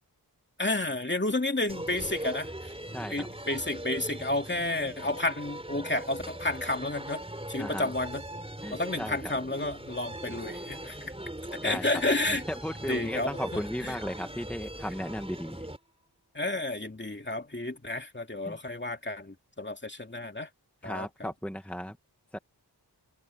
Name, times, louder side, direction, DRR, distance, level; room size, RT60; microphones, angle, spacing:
voice 1, 0.6-2.7 3.1-7.2 7.5-8.2 8.7-11.0 11.5-12.4 12.9-14.0 16.3-20.5 20.8-21.3, left 2 dB, 25° left, 2.5 m, -31 dB
sound 1, 1.7-15.8, right 1 dB, 15° right, 3.8 m, -40 dB
voice 2, 2.9-3.3 7.6-7.9 8.6-9.2 11.6-11.8 12.3-15.7 18.4-18.6 20.8-22.0 22.3-22.4, equal, 5° left, 1.4 m, -36 dB
wide cardioid pair, 80°, 40 cm